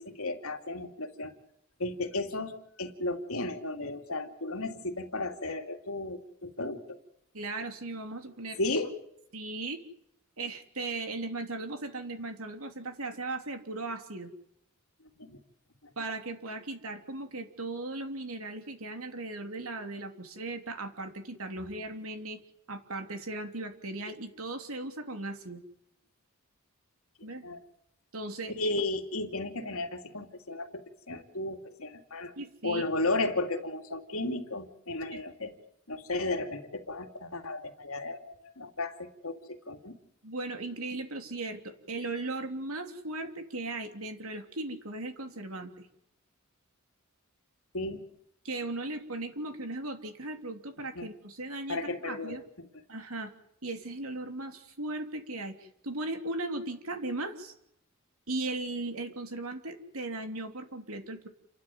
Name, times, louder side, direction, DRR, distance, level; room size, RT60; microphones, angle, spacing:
voice 1, 0.0-1.3 1.8-2.5 2.8-7.0 8.6-8.9 15.2-15.4 15.8-15.9 27.4-27.6 28.6-30.8 31.1-32.3 32.6-35.5 35.9-39.9 47.7-48.0 50.9-51.1 51.7-52.4, left 2 dB, 75° left, 5 dB, 2.8 m, -34 dB
voice 2, 7.3-8.8 9.3-9.8 10.4-14.3 16.0-22.4 22.7-25.6 27.2-27.5 28.1-28.7 32.4-32.8 35.1-35.2 40.2-45.9 48.4-52.4 52.9-53.3 53.6-57.5 58.3-61.3, right 2 dB, 80° right, 6 dB, 3.2 m, -37 dB
29.0 x 12.5 x 9.5 m, 0.78 s
head